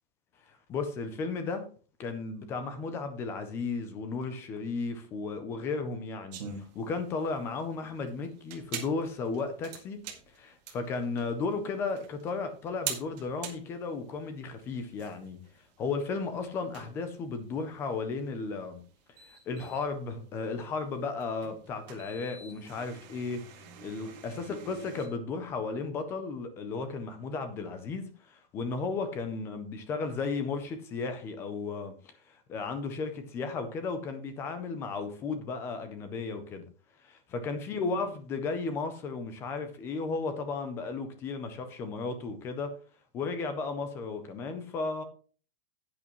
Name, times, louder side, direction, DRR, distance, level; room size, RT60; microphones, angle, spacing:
voice 1, 0.5-1.7 2.0-15.4 15.8-18.8 19.2-23.5 23.8-36.7 37.0-42.8 43.1-45.0, left 4 dB, 10° left, 0.4 m, -34 dB
sound 1, 6.3-25.1, right 7 dB, 45° right, 2.0 m, -45 dB
10.5 x 8.6 x 3.0 m
supercardioid pair, 180°, 30 cm